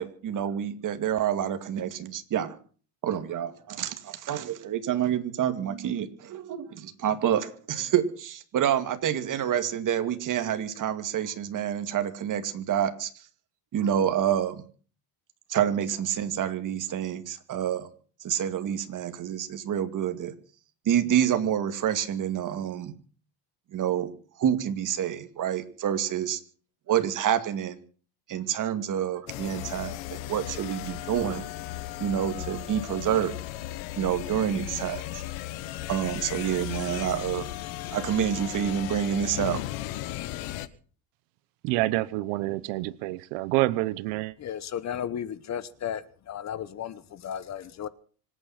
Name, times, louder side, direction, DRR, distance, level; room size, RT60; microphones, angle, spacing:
voice 1, 0.0-2.6 3.0-13.1 13.7-14.6 15.5-17.9 18.2-20.3 20.9-22.9 23.7-24.1 24.4-26.4 26.9-27.8 28.3-31.4 32.0-33.4 34.0-35.2 35.9-37.5 37.9-39.6, right 10 dB, 40° right, 9 dB, 2.3 m, -28 dB
sound 1, 29.3-40.7, left 15 dB, 70° left, 1.4 m, -36 dB
voice 2, 41.6-44.3, right 19 dB, 75° right, 18 dB, 1.0 m, -27 dB
voice 3, 44.4-47.9, left 9 dB, 35° left, 17 dB, 1.0 m, -34 dB
26.0 x 9.2 x 5.8 m, 0.42 s
cardioid pair, 130°, 47 cm